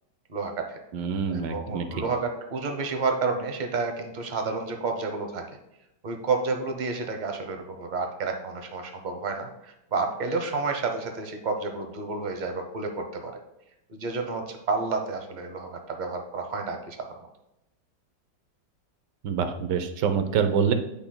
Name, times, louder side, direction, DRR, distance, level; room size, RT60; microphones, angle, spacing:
voice 1, 0.3-0.8 1.3-5.4 6.0-13.3 13.9-17.0, right 4 dB, 45° right, 4 dB, 0.6 m, -30 dB
voice 2, 0.9-1.9 19.2-20.7, right 6 dB, 75° right, 8 dB, 1.3 m, -25 dB
9.9 x 5.8 x 2.2 m, 0.89 s
omnidirectional pair, 1.9 m